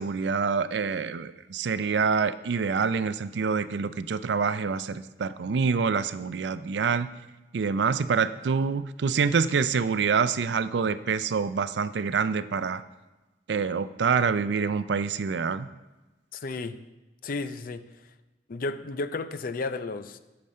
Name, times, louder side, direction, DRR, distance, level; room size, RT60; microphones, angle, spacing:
voice 1, 0.0-7.1 7.5-12.8 13.5-15.7, right 5 dB, 70° right, 14 dB, 0.4 m, -26 dB
voice 2, 16.3-16.8 17.2-17.9 18.5-20.2, left 3 dB, 55° left, 11 dB, 0.5 m, -33 dB
11.0 x 6.8 x 4.3 m, 1.1 s
head